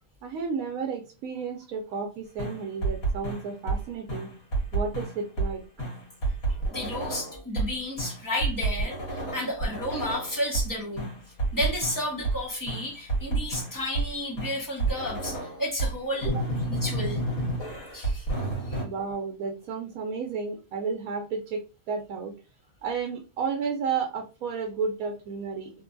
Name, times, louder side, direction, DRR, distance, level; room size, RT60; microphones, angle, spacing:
voice 1, 0.2-4.3 4.7-5.6 16.2-16.4 18.8-22.3 22.8-25.7, right 5 dB, 75° right, 1.0 m, -32 dB
sound 1, 2.4-3.8 4.1-5.5 5.8-7.7 8.0-10.7 11.0-12.4 12.7-14.1 14.4-15.9 16.2-18.8, right 2 dB, 70° left, 1.7 m, -30 dB
voice 2, 6.5-11.1 11.5-16.3 16.7-17.2 17.9-18.3 18.6-18.9, left 1 dB, 15° left, 0.8 m, -32 dB
3.2 x 2.2 x 2.5 m
omnidirectional pair, 1.5 m